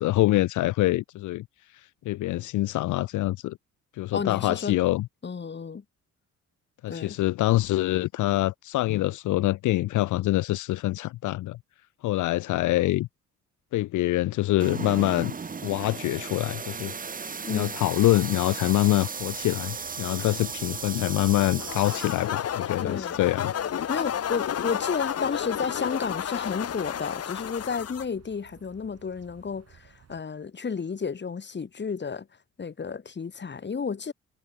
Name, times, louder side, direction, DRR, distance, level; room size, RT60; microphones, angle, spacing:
voice 1, 0.0-1.4 1.7-3.6 3.9-5.1 6.8-11.6 12.0-13.1 13.7-15.3 15.6-16.9 17.5-23.5, left 17 dB, 75° left, 0.7 m, -25 dB
voice 2, 4.1-4.7 5.2-5.8 6.9-7.2 17.4-17.7 22.8-23.2 23.9-32.3 32.6-34.1, left 5 dB, 35° left, 4.0 m, -32 dB
sound 1, 14.6-22.3, right 5 dB, 30° right, 1.3 m, -36 dB
sound 2, 19.2-30.2, right 8 dB, 55° right, 7.0 m, -55 dB
sound 3, 21.6-28.0, left 9 dB, 55° left, 1.8 m, -31 dB
cardioid pair, 90°, 30 cm